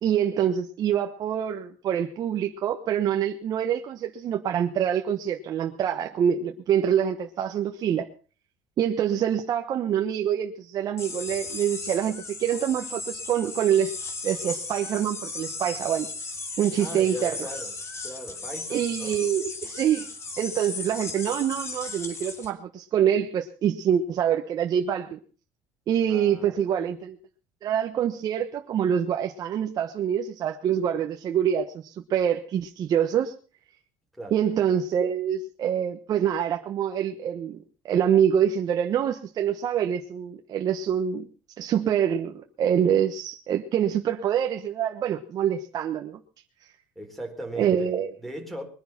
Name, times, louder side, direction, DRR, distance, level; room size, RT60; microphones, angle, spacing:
voice 1, 0.0-8.1 8.8-13.9 14.2-16.1 16.6-17.3 18.7-20.1 20.4-25.2 25.9-27.2 27.6-33.3 34.3-37.6 37.8-41.3 41.6-46.2 47.6-48.1, right 9 dB, 45° right, 4 dB, 1.2 m, -25 dB
sound 1, 11.0-22.5, left 3 dB, 30° left, 2.9 m, -36 dB
voice 2, 16.8-17.8 18.0-19.1 26.1-26.9 34.2-34.4 47.0-48.6, right 1 dB, ahead, 6 dB, 4.3 m, -39 dB
21.5 x 10.5 x 5.9 m, 0.39 s
cardioid pair, 140°, 9 cm